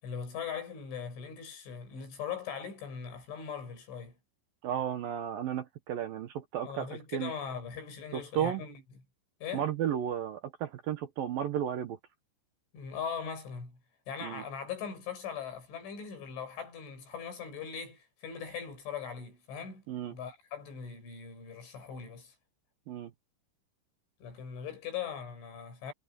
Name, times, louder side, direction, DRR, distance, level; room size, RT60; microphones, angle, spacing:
voice 1, 0.0-4.2 6.6-8.8 9.4-9.7 12.7-13.8 14.1-19.8 20.1-22.3 24.2-25.9, left 7 dB, 90° left, 9.7 m, -40 dB
voice 2, 4.6-7.3 8.1-8.6 9.5-12.0 14.2-14.4 19.9-20.2 22.9-23.1, right 9 dB, 70° right, 2.4 m, -33 dB
omnidirectional pair, 5.3 m